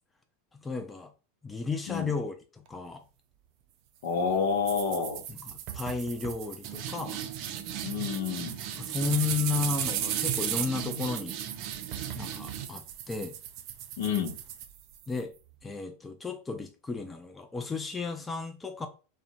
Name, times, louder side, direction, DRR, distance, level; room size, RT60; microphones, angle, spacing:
voice 1, 0.5-1.1 1.4-3.0 5.3-7.2 8.7-11.4 12.2-13.3 15.1-15.3 15.6-18.9, left 4 dB, 15° left, 0.4 m, -33 dB
voice 2, 4.0-5.2 7.8-8.6 14.0-14.4, left 6 dB, 70° left, 0.6 m, -29 dB
sound 1, 4.7-15.2, right 10 dB, 55° right, 0.4 m, -35 dB
2.7 x 2.1 x 2.6 m
hypercardioid pair, 100°, 0 cm